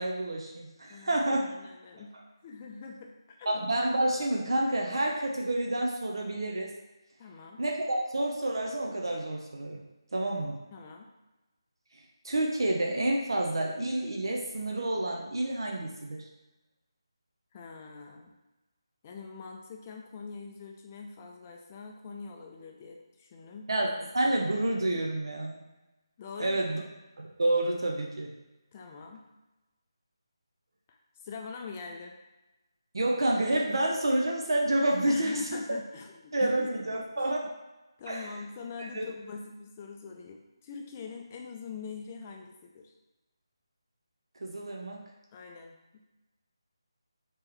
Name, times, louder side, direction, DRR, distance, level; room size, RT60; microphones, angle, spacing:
voice 1, 0.0-1.5 3.5-6.7 7.6-9.8 10.1-10.6 12.2-16.2 23.7-25.6 26.4-26.8 27.2-28.3 32.9-35.6 36.3-37.5 38.1-38.3 38.8-39.1 44.4-45.0, right 1 dB, 60° right, 0 dB, 0.6 m, -29 dB
voice 2, 0.9-2.1 2.4-3.5 7.2-7.6 10.7-11.1 17.5-18.3 19.0-23.7 26.2-26.7 28.7-29.2 30.9-31.0 31.2-32.2 35.1-37.3 38.0-42.9 45.3-46.0, left 5 dB, 25° left, 2 dB, 0.4 m, -43 dB
4.5 x 3.0 x 3.3 m, 1.0 s
figure-of-eight pair, 155°, 3 cm